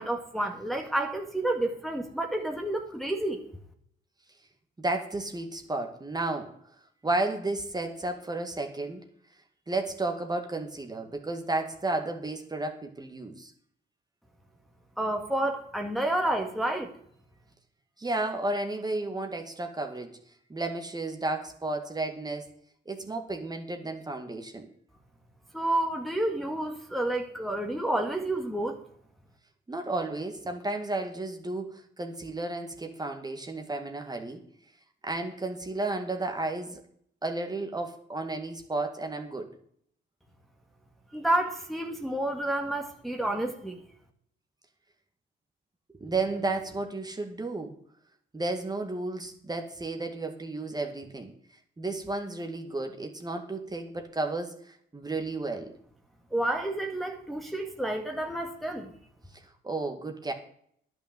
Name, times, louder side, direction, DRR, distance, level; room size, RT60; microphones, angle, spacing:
voice 1, 0.0-3.4 15.0-16.9 25.5-28.8 41.1-43.8 56.3-58.9, right 1 dB, ahead, 2 dB, 2.0 m, -30 dB
voice 2, 4.8-6.5 7.0-9.0 9.7-13.5 18.0-20.1 20.5-22.5 22.9-24.7 29.7-34.4 35.0-36.8 37.2-39.5 46.0-47.8 48.3-51.3 51.8-55.7 59.3-60.3, right 2 dB, 20° right, 4 dB, 2.1 m, -33 dB
10.5 x 6.2 x 9.1 m, 0.64 s
cardioid pair, 90°, 20 cm